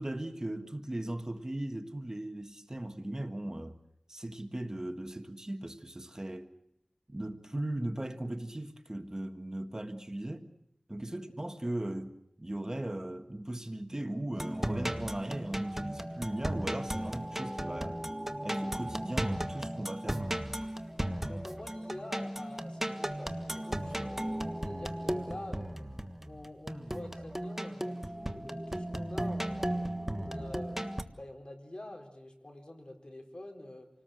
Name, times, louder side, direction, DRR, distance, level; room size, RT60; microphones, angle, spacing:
voice 1, 0.0-3.8 4.1-6.5 7.1-10.5 10.9-18.0 18.4-20.4, right 1 dB, 30° right, 1.6 m, -38 dB
sound 1, 14.3-31.0, right 1 dB, 15° right, 1.5 m, -36 dB
voice 2, 21.2-24.0 24.6-25.9 26.2-30.8 31.2-33.9, left 1 dB, 50° left, 4.2 m, -47 dB
28.0 x 19.0 x 7.8 m
wide cardioid pair, 40°, 2 cm